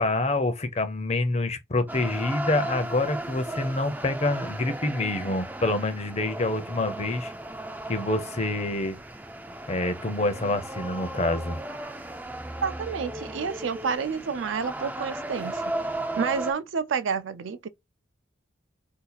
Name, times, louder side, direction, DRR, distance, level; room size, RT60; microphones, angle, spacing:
voice 1, 0.0-7.3 7.9-9.0 9.7-11.6, left 2 dB, 35° left, 0.6 m, -27 dB
sound 1, 1.9-16.5, right 1 dB, 10° right, 0.3 m, -36 dB
voice 2, 12.6-15.6 16.2-17.7, right 6 dB, 80° right, 0.4 m, -29 dB
2.7 x 2.4 x 4.0 m
head